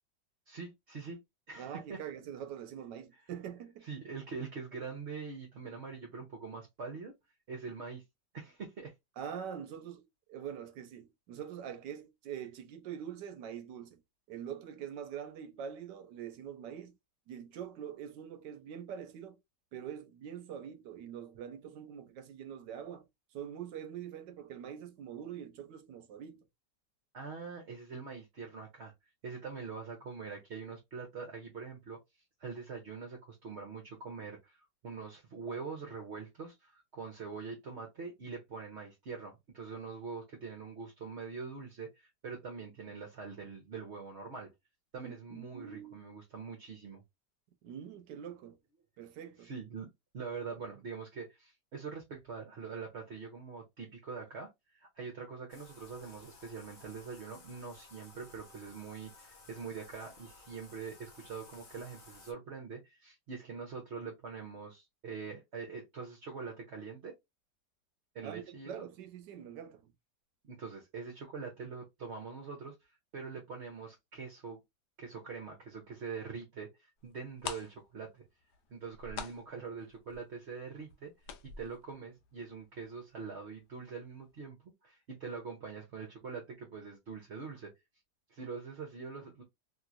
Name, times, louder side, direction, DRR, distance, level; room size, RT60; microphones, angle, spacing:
voice 1, 0.5-1.2 1.5-2.0 3.8-7.1 7.5-8.0 8.3-8.9 27.1-28.9 29.2-44.5 44.9-47.0 49.4-49.9 50.1-67.1 68.1-68.8 70.4-74.6 75.0-78.2 78.7-81.1 81.4-84.6 84.8-87.7 88.3-89.4, right 5 dB, 50° right, 0.9 m, -44 dB
voice 2, 1.6-3.9 9.2-10.0 10.3-14.0 14.3-16.9 17.3-19.4 19.7-23.0 23.3-26.4 45.0-46.0 47.6-48.6 49.0-49.5 68.2-69.9, right 9 dB, 80° right, 1.3 m, -44 dB
Bathtub (filling or washing), 55.5-62.3, left 3 dB, 40° left, 0.7 m, -57 dB
sound 1, 77.1-77.2 77.4-83.0 83.2-83.3 83.8-84.0 84.3-84.4, left 7 dB, 75° left, 1.2 m, -45 dB
3.0 x 2.9 x 2.4 m
omnidirectional pair, 1.9 m